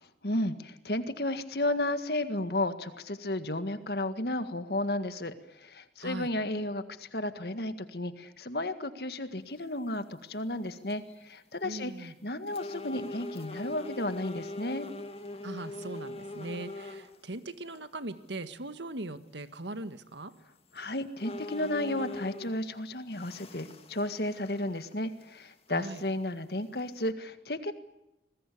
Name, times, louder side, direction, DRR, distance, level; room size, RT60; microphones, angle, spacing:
voice 1, 0.2-14.9 20.7-27.7, left 1 dB, 60° left, 10 dB, 1.8 m, -33 dB
sound 1, 10.1-10.2 10.7-11.1 11.8-11.9 12.5-17.1 17.7-17.8 20.2-20.3 20.8-20.9 21.2-22.7 23.1-24.9 25.2-25.3 26.0-26.1 26.8-27.1, left 2 dB, 35° left, 2.0 m, -42 dB
voice 2, 11.6-12.1 15.4-20.3 25.7-26.0, right 2 dB, 85° right, 10 dB, 1.8 m, -40 dB
27.0 x 20.5 x 8.6 m, 0.91 s
head